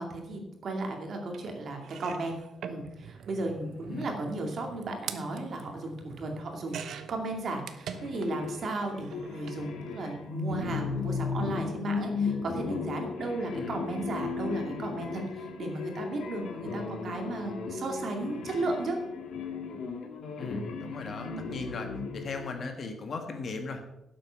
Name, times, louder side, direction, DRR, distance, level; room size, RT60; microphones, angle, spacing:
voice 1, 0.0-2.4 2.6-19.0, right 2 dB, 45° right, 2 dB, 2.4 m, -35 dB
sound 1, 1.3-1.4 1.8-8.5 8.8-9.6 10.6-10.8 11.1-11.2, right 7 dB, 70° right, 0.9 m, -44 dB
sound 2, 7.9-22.5, left 4 dB, 75° left, 2.0 m, -36 dB
voice 2, 20.4-21.9 22.1-23.9, left 3 dB, 40° left, 5 dB, 1.6 m, -38 dB
12.0 x 7.8 x 6.4 m, 0.89 s
wide cardioid pair, 165°, 0 cm